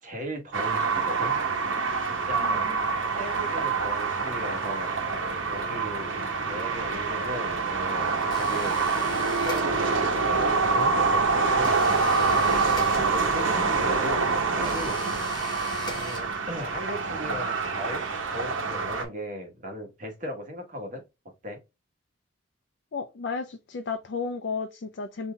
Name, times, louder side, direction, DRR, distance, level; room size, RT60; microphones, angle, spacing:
voice 1, 0.0-1.4 2.1-2.7 3.1-4.9 5.5-6.1 6.4-8.8 9.2-11.8 12.7-15.0 15.9-21.0 21.4-21.6, equal, 40° right, 1.3 m, -37 dB
sound 1, 0.5-19.0, right 4 dB, 75° right, 1.0 m, -26 dB
voice 2, 2.4-2.8 22.9-25.3, left 4 dB, 55° left, 0.4 m, -33 dB
sound 2, 8.3-10.1 11.6-13.5 14.6-16.7, left 2 dB, 20° left, 1.0 m, -41 dB
5.5 x 2.7 x 2.2 m
head